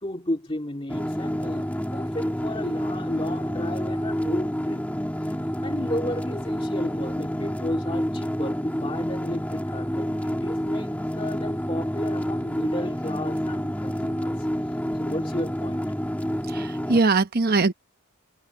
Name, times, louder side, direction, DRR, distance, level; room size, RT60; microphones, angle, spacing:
voice 1, 0.0-4.9 5.6-14.4 15.0-15.8, left 1 dB, 25° left, 2.4 m, -33 dB
sound 1, 0.9-17.0, equal, 5° left, 1.9 m, -28 dB
voice 2, 16.5-17.7, right 3 dB, 40° right, 0.9 m, -21 dB
head